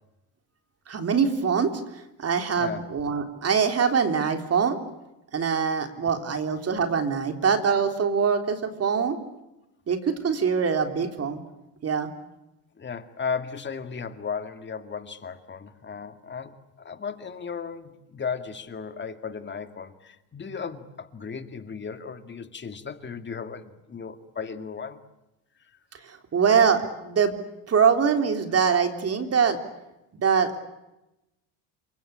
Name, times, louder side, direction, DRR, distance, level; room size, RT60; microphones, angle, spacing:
voice 1, 0.9-4.8 5.3-9.2 9.9-11.4 11.8-12.1 26.0-27.4 27.7-29.6 30.1-30.6, right 6 dB, 35° right, 6 dB, 3.7 m, -23 dB
voice 2, 12.8-25.0, left 6 dB, 25° left, 9 dB, 2.3 m, -35 dB
28.5 x 23.5 x 8.7 m, 0.94 s
cardioid pair, 125°, 42 cm